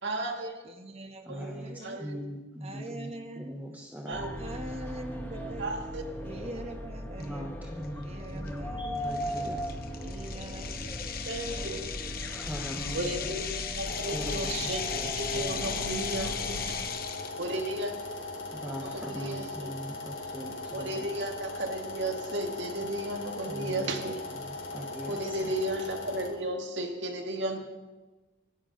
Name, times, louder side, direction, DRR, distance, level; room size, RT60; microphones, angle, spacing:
voice 1, 0.0-0.6 1.3-2.2 4.1-4.3 5.3-6.0 11.3-11.8 12.9-16.9 17.4-18.1 18.8-19.7 20.7-24.2 25.1-27.6, right 1 dB, 65° right, 3 dB, 2.1 m, -34 dB
voice 2, 0.6-2.1 2.6-3.8 4.4-5.8 6.2-7.5 8.0-9.5 10.0-10.9 11.5-12.3 13.0-13.4 16.2-16.9 24.0-24.2, right 1 dB, 35° right, 5 dB, 1.3 m, -44 dB
voice 3, 1.3-3.1 3.4-4.2 7.2-9.7 12.3-13.3 14.1-15.9 18.5-21.2 23.5-24.0 24.3-25.5, equal, 10° right, 1 dB, 1.2 m, -41 dB
sound 1, 4.1-16.9, equal, 10° left, 1.9 m, -38 dB
sound 2, 7.2-7.3 7.8-8.0 8.5-8.6 9.1-17.4, left 8 dB, 50° left, 1.1 m, -37 dB
sound 3, 13.8-26.3, left 2 dB, 65° left, 4.2 m, -39 dB
24.5 x 13.5 x 3.9 m, 1.2 s
head